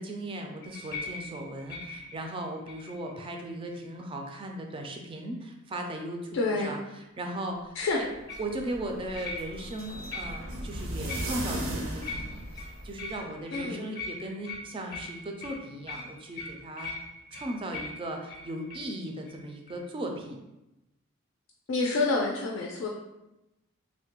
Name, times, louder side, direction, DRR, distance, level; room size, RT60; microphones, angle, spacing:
voice 1, 0.0-6.4 6.6-8.1 8.4-12.5 12.8-16.9 17.3-20.4, right 1 dB, 25° right, 3 dB, 0.3 m, -37 dB
sound 1, 0.6-3.1 3.6-4.0 8.3-8.5 9.1-9.8 10.1-10.6 11.1-11.6 12.0-18.9 19.2-19.4 19.7-19.8, left 3 dB, 20° left, 0.5 m, -41 dB
voice 2, 6.3-6.7 7.8-8.0 13.5-13.9 21.7-22.9, left 3 dB, 75° left, -1 dB, 0.4 m, -28 dB
sound 2, 8.1-13.2, right 1 dB, 80° right, 0.6 m, -37 dB
3.1 x 2.1 x 2.9 m, 0.94 s
head